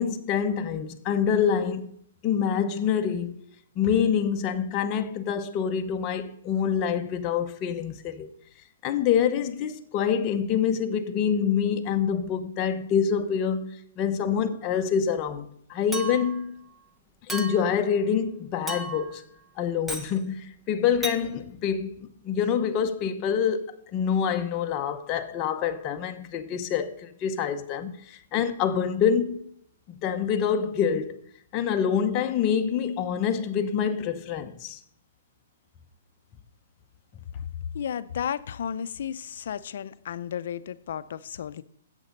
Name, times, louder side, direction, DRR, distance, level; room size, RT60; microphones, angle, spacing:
voice 1, 0.0-1.9 2.2-3.4 3.8-8.3 8.8-16.6 17.3-19.2 19.6-29.5 29.9-31.2 31.5-34.8, left 7 dB, 25° left, 0.8 m, -26 dB
Chink clink, 15.9-16.4 17.3-17.8 18.7-19.2 19.9-20.1 21.0-21.2, right 2 dB, 5° right, 0.7 m, -34 dB
voice 2, 37.7-41.6, left 8 dB, 60° left, 0.5 m, -33 dB
11.0 x 8.1 x 5.3 m
hypercardioid pair, 160°, 0 cm